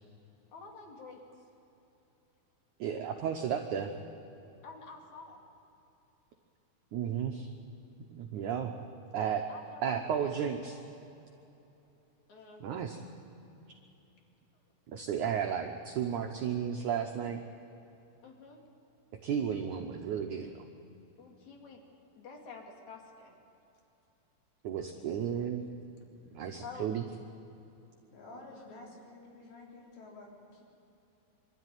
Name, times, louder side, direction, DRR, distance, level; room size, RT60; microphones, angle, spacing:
voice 1, 0.5-1.2 4.6-5.4 9.5-10.3 12.3-12.6 18.2-18.6 21.2-21.8 22.1-23.3 26.6-27.0 28.5-28.8, left 4 dB, 45° left, 1 dB, 3.4 m, -49 dB
voice 2, 2.8-3.9 6.9-7.5 8.1-8.7 9.1-9.5 9.8-10.8 12.6-13.0 14.9-17.4 19.2-20.7 24.6-25.7 26.3-27.0, right 8 dB, 75° right, 3 dB, 1.7 m, -33 dB
voice 3, 28.1-30.6, left 2 dB, 80° left, -2 dB, 5.9 m, -50 dB
25.0 x 13.0 x 9.3 m, 2.9 s
omnidirectional pair, 4.9 m